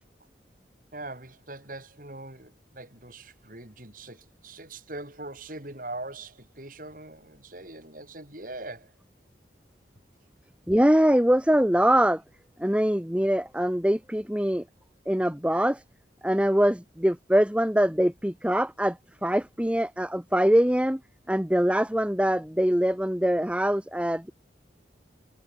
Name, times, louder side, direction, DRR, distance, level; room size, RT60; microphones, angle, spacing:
voice 1, 0.9-8.9, right 2 dB, 50° right, 6.6 m, -41 dB
voice 2, 10.7-12.2 12.6-14.6 15.1-15.8 16.2-21.0 21.3-24.3, equal, 5° right, 1.2 m, -23 dB
head